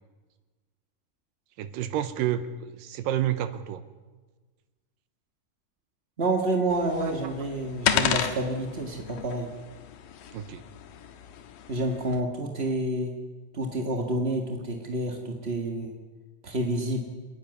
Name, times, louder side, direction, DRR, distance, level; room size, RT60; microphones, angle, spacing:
voice 1, 1.6-3.8 10.3-10.6, right 11 dB, 80° right, 12 dB, 2.5 m, -29 dB
voice 2, 6.2-9.5 11.7-13.1 13.5-15.9 16.4-17.0, right 1 dB, 35° right, 3 dB, 0.9 m, -28 dB
sound 1, 6.7-12.2, left 9 dB, 75° left, 2.8 m, -32 dB
28.0 x 10.5 x 9.6 m, 1.3 s
omnidirectional pair, 4.0 m